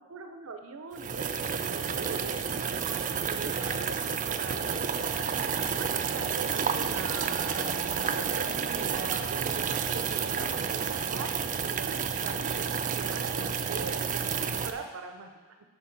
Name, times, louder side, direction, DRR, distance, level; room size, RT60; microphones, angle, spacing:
voice 1, 0.0-15.4, right 4 dB, 75° right, 6 dB, 0.6 m, -42 dB
sound 1, 0.9-14.7, right 6 dB, 40° right, 0.4 m, -30 dB
9.8 x 5.2 x 3.9 m, 1.3 s
head